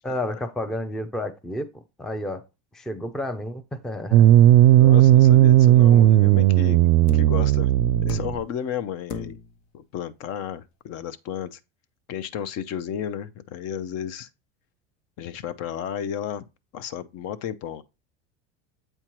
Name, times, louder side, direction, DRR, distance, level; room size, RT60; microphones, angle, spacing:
voice 1, 0.0-1.7 2.0-2.4 2.7-4.3, left 1 dB, ahead, 0.4 m, -31 dB
sound 1, 4.1-8.4, right 13 dB, 70° right, 0.5 m, -15 dB
voice 2, 4.8-9.4 9.7-11.6 12.1-14.3 15.2-16.4 16.7-17.8, left 9 dB, 50° left, 0.6 m, -33 dB
sound 2, 6.1-6.4 7.1-7.5 8.1-8.6 9.1-9.6 11.0-11.1, left 5 dB, 70° left, 1.0 m, -37 dB
7.9 x 4.4 x 3.0 m
supercardioid pair, 120°, 33 cm